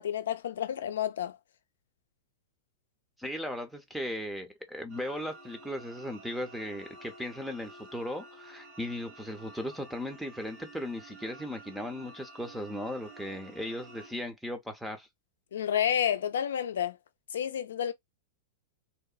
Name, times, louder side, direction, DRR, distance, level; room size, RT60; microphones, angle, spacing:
voice 1, 0.0-1.4 15.5-17.0 17.3-17.9, left 9 dB, 85° left, 0.4 m, -30 dB
voice 2, 3.2-15.1, left 1 dB, ahead, 0.5 m, -37 dB
sound 1, 4.9-14.1, right 2 dB, 60° right, 1.1 m, -51 dB
2.8 x 2.1 x 2.3 m
hypercardioid pair, 135°, 0 cm